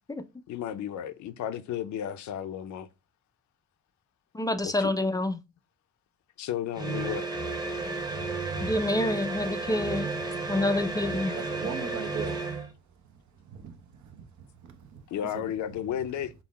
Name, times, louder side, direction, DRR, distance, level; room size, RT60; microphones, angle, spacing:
voice 1, 0.5-2.9 4.6-4.9 6.4-7.4 15.1-16.3, left 10 dB, 70° left, 0.5 m, -33 dB
voice 2, 4.3-5.4 8.6-10.1 10.5-11.3, left 1 dB, 15° left, 0.3 m, -27 dB
sound 1, 6.7-12.7, right 3 dB, 15° right, 0.8 m, -33 dB
voice 3, 8.1-8.8 9.1-9.2 9.8-10.6 10.9-12.5 13.4-15.5, right 7 dB, 70° right, 0.8 m, -41 dB
3.8 x 2.1 x 4.0 m
cardioid pair, 90°, 30 cm